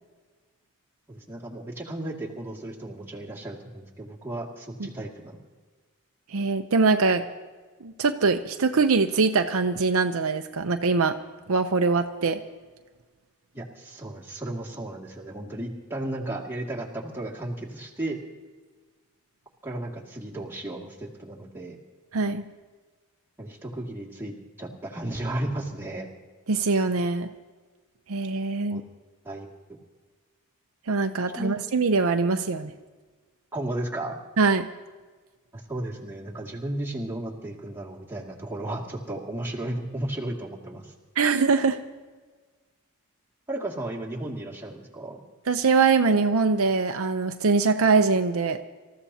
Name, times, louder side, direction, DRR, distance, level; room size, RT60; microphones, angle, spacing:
voice 1, 1.1-5.4 13.5-18.2 19.6-21.8 23.4-26.1 28.7-28.8 29.2-29.5 31.3-31.5 33.5-34.2 35.5-40.9 43.5-45.2, right 1 dB, 10° right, -4 dB, 2.3 m, -34 dB
voice 2, 6.3-7.2 7.8-11.1 11.5-12.4 22.1-22.4 26.5-27.3 28.1-28.8 30.9-32.7 34.4-34.7 41.2-41.8 45.5-48.6, right 4 dB, 70° right, 6 dB, 0.7 m, -23 dB
26.5 x 14.0 x 2.8 m, 1.4 s
head